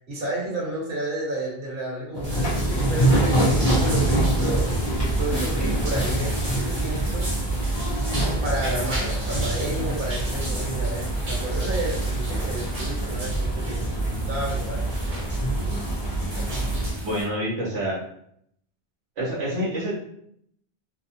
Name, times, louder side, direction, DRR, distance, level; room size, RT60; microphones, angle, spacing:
voice 1, 0.0-7.3 8.4-15.0 16.4-16.6, right 1 dB, 55° right, -5 dB, 1.2 m, -32 dB
sound 1, 2.1-16.9, right 1 dB, 25° left, 0.6 m, -25 dB
sound 2, 2.2-17.2, right 1 dB, 40° right, 0.9 m, -36 dB
voice 2, 17.0-18.0 19.2-20.0, equal, 75° right, -6 dB, 1.1 m, -27 dB
2.7 x 2.2 x 2.7 m, 0.69 s
omnidirectional pair, 1.1 m